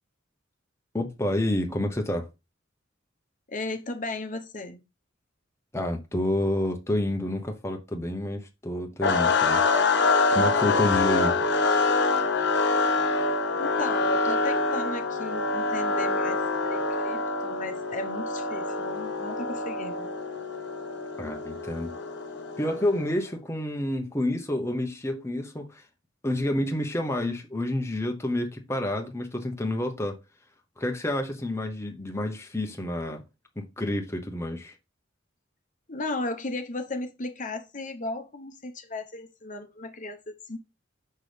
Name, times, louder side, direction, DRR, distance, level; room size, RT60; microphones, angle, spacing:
voice 1, 0.9-2.3 5.7-9.6 10.3-11.4 21.2-21.9 22.6-25.8 26.2-30.2 30.8-33.2 33.6-34.7, left 1 dB, 15° left, 0.9 m, -29 dB
voice 2, 3.5-4.8 13.6-20.1 35.9-40.6, left 2 dB, 40° left, 1.0 m, -35 dB
sound 1, 9.0-23.1, left 3 dB, 60° left, 1.2 m, -26 dB
6.4 x 6.0 x 3.3 m
head